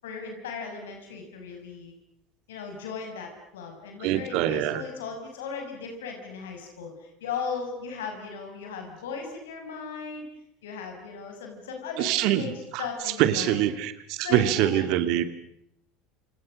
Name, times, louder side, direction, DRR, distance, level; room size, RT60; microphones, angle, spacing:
voice 1, 0.0-1.9 2.5-10.2 10.6-13.6 14.2-15.0, left 5 dB, 70° left, 3 dB, 6.2 m, -37 dB
voice 2, 4.0-4.8 12.0-12.9 13.2-15.2, right 12 dB, 55° right, 11 dB, 2.4 m, -24 dB
29.0 x 28.0 x 6.4 m, 0.75 s
figure-of-eight pair, 75°, 0 cm